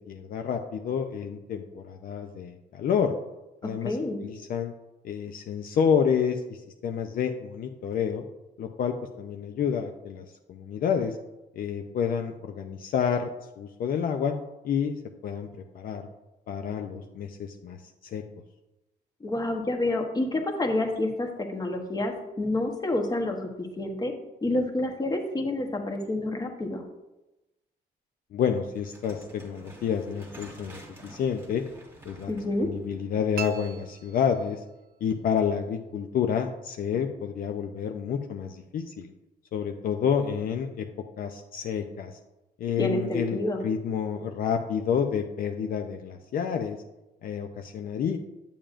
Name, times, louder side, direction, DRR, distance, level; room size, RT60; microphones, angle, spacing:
voice 1, 0.1-3.1 3.6-4.0 4.2-4.7 5.0-8.2 8.6-11.2 11.5-13.3 13.6-14.3 14.6-15.0 15.2-15.5 15.7-16.0 16.5-18.2 28.3-31.6 32.1-34.6 35.0-39.1 39.5-40.9 41.2-42.2 42.6-46.8 47.2-48.2, left 7 dB, 60° left, 5 dB, 0.5 m, -29 dB
voice 2, 3.6-4.2 19.2-24.1 24.4-26.8 32.3-32.7 42.8-43.6, left 1 dB, 25° left, 3 dB, 1.1 m, -28 dB
sound 1, 28.7-33.9, right 1 dB, 15° right, 1.5 m, -49 dB
sound 2, 33.4-34.9, right 8 dB, 65° right, 0.5 m, -39 dB
8.7 x 6.9 x 2.5 m, 0.98 s
cardioid pair, 120°, 17 cm